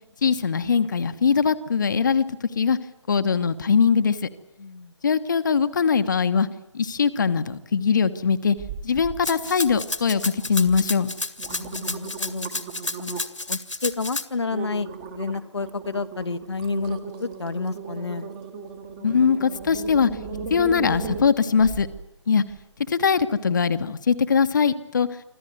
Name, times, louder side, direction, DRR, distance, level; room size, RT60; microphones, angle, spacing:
voice 1, 0.2-2.2 2.5-2.8 3.1-4.2 5.0-6.5 6.7-8.6 8.8-11.1 19.0-20.1 20.5-21.9 22.3-22.4 22.9-25.1, left 6 dB, 40° left, 10 dB, 1.2 m, -21 dB
voice 2, 4.6-4.9 11.5-12.5 13.0-14.9 15.1-18.3, left 4 dB, 65° left, 7 dB, 1.1 m, -30 dB
sound 1, 8.6-9.2 9.6-10.1 10.7-10.8 11.2-13.4 13.9-14.1 14.5-22.0 22.5-22.6, right 5 dB, 15° right, 1.6 m, -36 dB
Rattle (instrument), 9.2-14.2, left 2 dB, 80° left, 2.2 m, -31 dB
26.0 x 15.0 x 9.5 m, 0.93 s
figure-of-eight pair, 155°, 16 cm